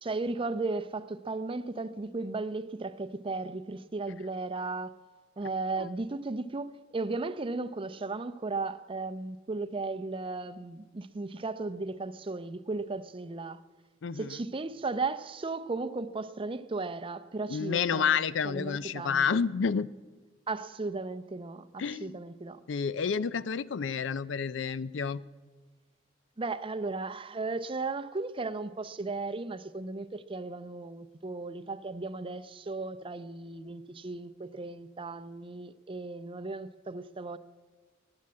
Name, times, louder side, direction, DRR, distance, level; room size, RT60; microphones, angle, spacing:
voice 1, 0.0-4.9 5.4-13.6 14.1-18.2 18.4-19.4 20.5-22.6 26.4-37.4, right 3 dB, 30° right, 0.6 m, -35 dB
voice 2, 14.0-14.4 17.5-19.9 21.8-22.2 22.7-25.2, left 6 dB, 85° left, 0.5 m, -29 dB
15.5 x 9.7 x 8.4 m
head